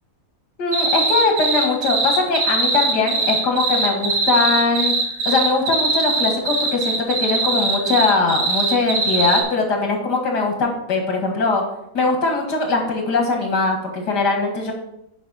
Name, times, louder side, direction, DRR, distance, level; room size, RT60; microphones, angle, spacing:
voice 1, 0.6-4.9 5.3-11.6 11.9-14.7, left 3 dB, 85° left, 2 dB, 2.3 m, -21 dB
sound 1, 0.7-9.4, right 4 dB, 65° right, 2.1 m, -21 dB
9.5 x 5.5 x 4.2 m, 0.78 s
omnidirectional pair, 1.7 m